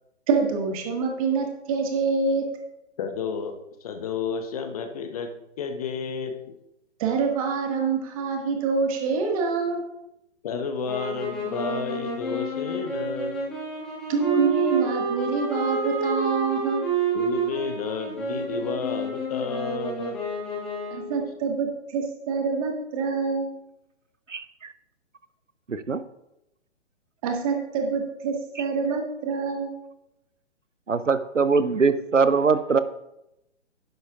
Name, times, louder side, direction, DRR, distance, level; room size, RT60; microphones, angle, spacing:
voice 1, 0.3-2.4 7.0-9.8 14.1-16.8 20.9-23.5 27.2-29.7, right 4 dB, 30° right, 2 dB, 1.7 m, -26 dB
voice 2, 3.0-6.4 10.4-13.4 17.1-20.2, left 5 dB, 30° left, 7 dB, 0.9 m, -31 dB
sound 1, 10.8-21.2, right 3 dB, ahead, 0.4 m, -29 dB
voice 3, 25.7-26.0 30.9-32.8, right 5 dB, 90° right, 13 dB, 0.7 m, -21 dB
11.5 x 10.5 x 2.4 m, 0.86 s
figure-of-eight pair, 130°, 36 cm